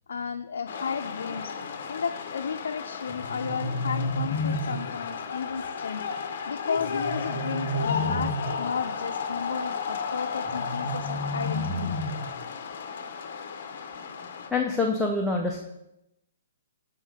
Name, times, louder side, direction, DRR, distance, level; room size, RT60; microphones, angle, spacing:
voice 1, 0.1-1.5 1.9-6.0 6.5-11.9, left 6 dB, 85° left, 5 dB, 0.4 m, -33 dB
sound 1, 0.7-14.5, left 6 dB, 45° left, 0.6 m, -34 dB
sound 2, 3.1-5.1 6.7-8.6 10.4-12.4, left 1 dB, 65° right, 3.0 m, -31 dB
voice 2, 14.5-15.6, left 3 dB, 5° left, -1 dB, 0.4 m, -25 dB
7.3 x 4.5 x 4.9 m, 0.86 s
hypercardioid pair, 180°, 0 cm